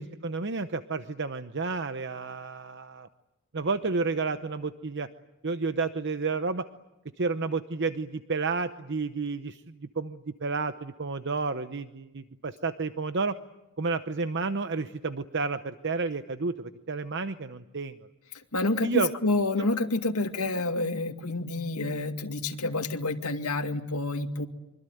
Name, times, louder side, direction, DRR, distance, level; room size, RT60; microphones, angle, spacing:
voice 1, 0.0-3.1 3.5-5.1 5.4-6.6 7.2-13.4 13.8-18.1 18.8-19.1, right 4 dB, 55° right, 10 dB, 0.9 m, -31 dB
voice 2, 18.5-24.5, left 2 dB, 85° left, 5 dB, 2.2 m, -28 dB
25.5 x 24.5 x 9.3 m, 0.96 s
head